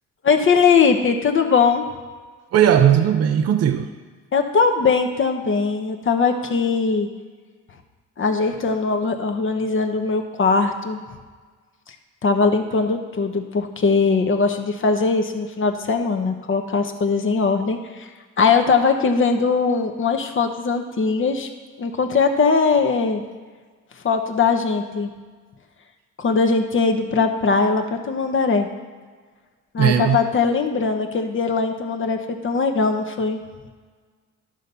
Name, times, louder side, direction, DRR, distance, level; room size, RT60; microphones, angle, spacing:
voice 1, 0.2-1.8 4.3-7.1 8.2-11.0 12.2-18.1 18.4-21.5 21.8-23.2 24.0-25.1 26.2-28.7 29.7-33.4, left 4 dB, 40° left, 5 dB, 1.0 m, -20 dB
voice 2, 2.5-3.9 29.8-30.2, right 9 dB, 55° right, 8 dB, 0.6 m, -17 dB
11.5 x 4.0 x 6.8 m, 1.5 s
cardioid pair, 90°, 30 cm